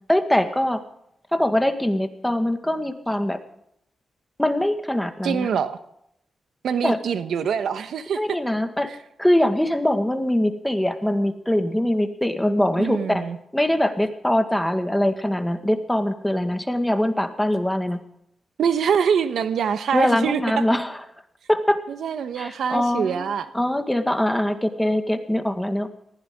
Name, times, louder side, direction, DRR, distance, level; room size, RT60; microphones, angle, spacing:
voice 1, 0.1-0.8 1.3-3.4 4.4-5.5 6.8-7.0 8.2-8.9 9.2-13.2 13.5-18.0 19.9-20.9 21.5-21.8 22.4-23.3 23.5-25.9, left 1 dB, 5° left, 7 dB, 1.8 m, -22 dB
voice 2, 5.2-5.8 6.6-8.2 8.9-9.0 12.8-13.4 18.6-20.6 21.9-23.5, right 7 dB, 80° right, 11 dB, 1.2 m, -24 dB
19.5 x 15.5 x 3.7 m, 0.76 s
cardioid pair, 75°, 0 cm